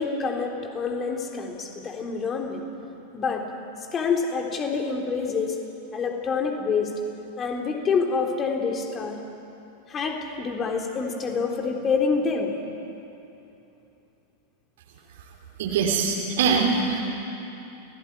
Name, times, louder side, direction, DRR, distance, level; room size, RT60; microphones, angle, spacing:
voice 1, 0.0-2.6 3.1-3.5 3.9-5.6 5.9-6.9 7.4-9.2 9.9-12.5, left 5 dB, 25° left, 2 dB, 3.7 m, -27 dB
voice 2, 15.6-17.0, right 5 dB, 55° right, 0 dB, 3.4 m, -23 dB
29.0 x 18.5 x 9.6 m, 2.9 s
figure-of-eight pair, 90°, 0 cm